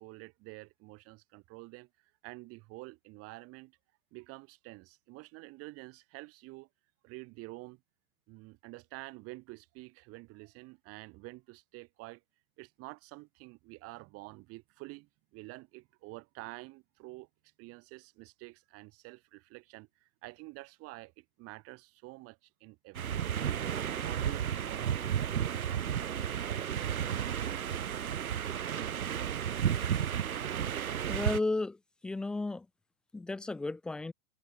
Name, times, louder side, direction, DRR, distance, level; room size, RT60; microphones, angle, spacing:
voice 1, 0.0-1.9 2.2-3.8 4.1-6.7 7.0-7.8 8.3-12.2 12.6-17.3 17.6-23.7 24.0-25.1, right 23 dB, 35° right, 7.2 m, -48 dB
sound 1, 22.9-31.4, right 9 dB, 85° right, 0.6 m, -33 dB
voice 2, 31.1-31.8 32.0-32.7 33.1-34.1, left 2 dB, ahead, 0.4 m, -33 dB
figure-of-eight pair, 105°, 41 cm